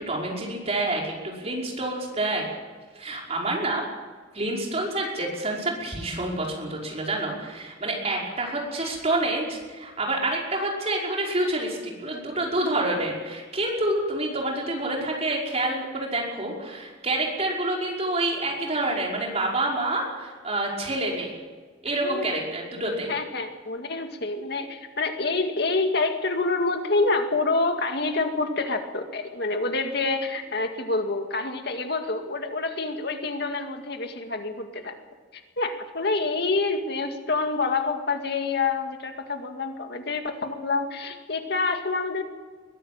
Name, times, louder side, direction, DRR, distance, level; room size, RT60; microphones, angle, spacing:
voice 1, 0.0-2.4 3.0-3.8 4.3-21.3 21.8-23.2, right 2 dB, 35° right, -1 dB, 5.5 m, -28 dB
voice 2, 21.9-22.3 23.1-34.9 35.3-42.2, left 3 dB, 60° left, 5 dB, 2.1 m, -27 dB
21.5 x 16.0 x 8.9 m, 1.4 s
head